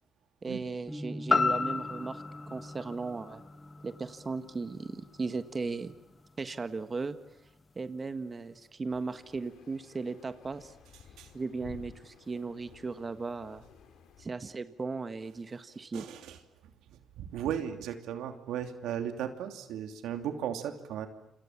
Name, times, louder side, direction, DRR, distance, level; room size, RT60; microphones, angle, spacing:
voice 1, 0.4-3.4 3.8-6.0 6.4-7.2 7.7-10.7 11.3-13.6 14.2-16.0, right 4 dB, 30° right, 10 dB, 1.4 m, -37 dB
sound 1, 0.9-6.9, equal, ahead, 1.6 m, -47 dB
sound 2, 1.3-5.4 5.8-5.9, left 4 dB, 30° left, 1.3 m, -32 dB
sound 3, 8.9-14.2, left 7 dB, 80° left, 4.5 m, -54 dB
voice 2, 15.9-16.4 16.9-21.1, right 9 dB, 90° right, 6 dB, 2.8 m, -36 dB
28.5 x 27.0 x 7.3 m, 0.84 s
cardioid pair, 90°, 0 cm